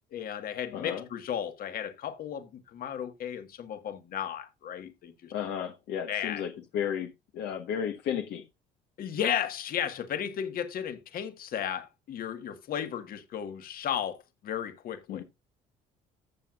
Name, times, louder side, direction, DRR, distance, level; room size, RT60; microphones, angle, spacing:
voice 1, 0.1-5.3 6.1-6.4 9.0-15.2, left 9 dB, 60° left, 1.7 m, -34 dB
voice 2, 0.7-1.0 5.3-8.4 15.1-15.2, left 8 dB, 80° left, 1.4 m, -33 dB
14.0 x 7.3 x 2.5 m
cardioid pair, 110°, 17 cm